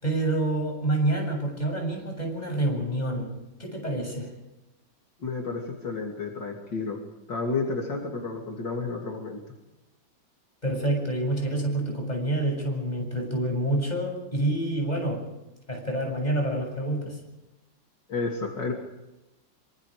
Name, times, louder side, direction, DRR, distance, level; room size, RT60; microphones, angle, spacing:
voice 1, 0.0-3.3 3.6-4.3 10.6-15.2 15.7-17.2, right 1 dB, 20° left, 1 dB, 7.8 m, -27 dB
voice 2, 5.2-7.0 7.3-9.4 18.1-18.7, left 3 dB, 70° left, 1 dB, 3.6 m, -31 dB
26.0 x 25.0 x 5.1 m, 0.96 s
omnidirectional pair, 2.0 m